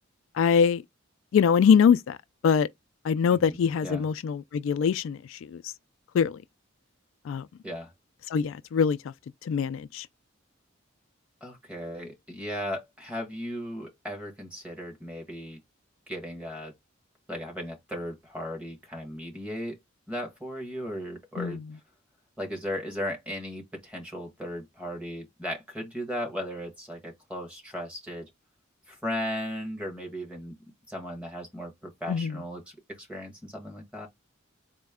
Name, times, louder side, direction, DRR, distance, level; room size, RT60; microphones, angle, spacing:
voice 1, 0.4-0.8 1.3-2.2 2.4-2.7 3.0-5.6 6.1-6.4 7.3-7.5 8.3-9.1 9.4-10.1 21.4-21.6 32.1-32.4, left 6 dB, 75° left, 0.3 m, -23 dB
voice 2, 3.3-4.1 7.6-7.9 11.4-15.6 16.1-16.8 17.3-19.8 20.1-21.6 22.4-28.3 28.9-30.6 30.9-32.6 32.9-34.1, equal, 5° right, 1.3 m, -36 dB
4.1 x 2.1 x 3.5 m
head